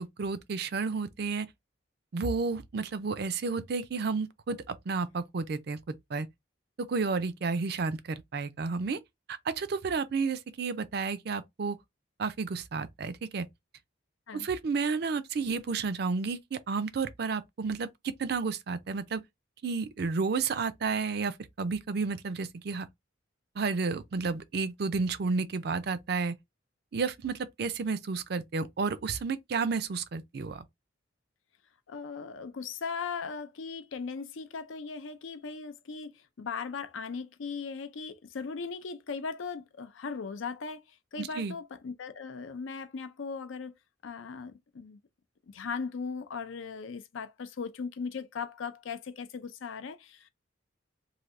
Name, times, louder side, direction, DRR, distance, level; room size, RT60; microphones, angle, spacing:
voice 1, 0.0-1.5 2.1-6.3 6.8-9.0 9.3-11.8 12.2-13.5 14.3-19.2 19.6-22.9 23.6-26.3 26.9-30.6 41.2-41.5, right 4 dB, 55° right, 0.4 m, -31 dB
voice 2, 31.9-43.7 44.0-45.0 45.5-50.3, left 5 dB, 75° left, 0.5 m, -38 dB
3.2 x 2.7 x 2.5 m
head